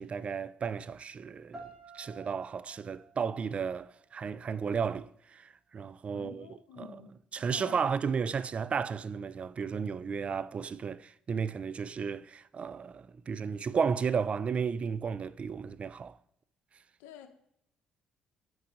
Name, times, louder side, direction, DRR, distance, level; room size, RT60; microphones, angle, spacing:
voice 1, 0.0-7.0 7.3-16.2, right 6 dB, 40° right, 0.3 m, -34 dB
sound 1, 1.5-4.5, right 3 dB, 20° right, 1.9 m, -52 dB
voice 2, 6.1-7.8 17.0-17.3, left 9 dB, 80° left, 0.7 m, -49 dB
7.7 x 3.8 x 5.1 m
supercardioid pair, 60°, 3 cm